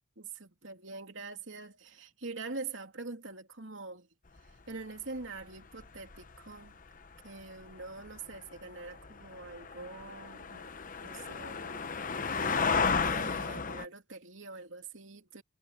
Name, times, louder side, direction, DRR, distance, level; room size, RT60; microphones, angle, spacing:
voice 1, 0.2-4.1 4.4-6.8 7.2-10.7 11.0-11.9 12.5-15.4, right 3 dB, 90° right, 3.0 m, -44 dB
sound 1, 4.4-4.5 5.2-5.4 5.8-6.6 7.2-13.9, left 5 dB, 45° left, 1.0 m, -33 dB
head